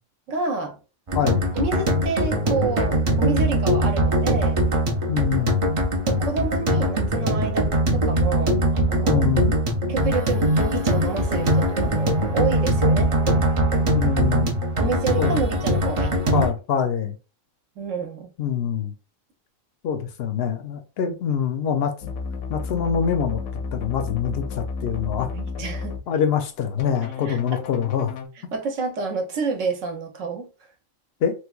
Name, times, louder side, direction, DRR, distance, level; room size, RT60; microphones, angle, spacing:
voice 1, 0.3-0.8 1.2-4.6 5.4-5.5 5.8-9.4 9.9-13.1 14.8-16.5 17.8-18.3 21.0-21.1 25.3-26.0 27.3-27.4 28.5-30.5, right 4 dB, 70° right, 1.1 m, -29 dB
voice 2, 1.1-1.5 5.1-5.6 9.1-9.6 13.9-14.6 15.2-15.8 16.3-17.2 18.4-18.9 19.8-21.9 22.5-23.4 23.7-25.3 26.1-28.1 31.2-31.3, left 7 dB, 65° left, 0.6 m, -25 dB
sound 1, 1.1-16.5, right 1 dB, 50° right, 0.4 m, -21 dB
sound 2, 22.0-26.0 26.8-28.3, left 4 dB, 85° left, 1.1 m, -32 dB
3.2 x 3.1 x 2.3 m
omnidirectional pair, 1.4 m